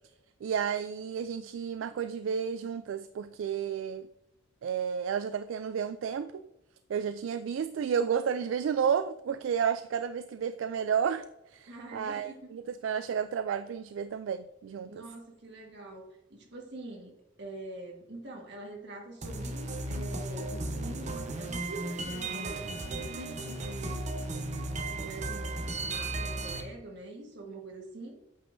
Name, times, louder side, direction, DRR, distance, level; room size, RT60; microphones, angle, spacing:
voice 1, 0.4-4.1 4.6-6.5 6.9-15.0, right 7 dB, 80° right, 11 dB, 0.3 m, -32 dB
voice 2, 11.7-12.5 14.9-24.1 24.8-28.2, right 2 dB, 60° right, 1 dB, 1.6 m, -45 dB
sound 1, 19.2-26.6, right 2 dB, 40° right, 0.8 m, -35 dB
8.7 x 5.3 x 2.6 m, 0.89 s
head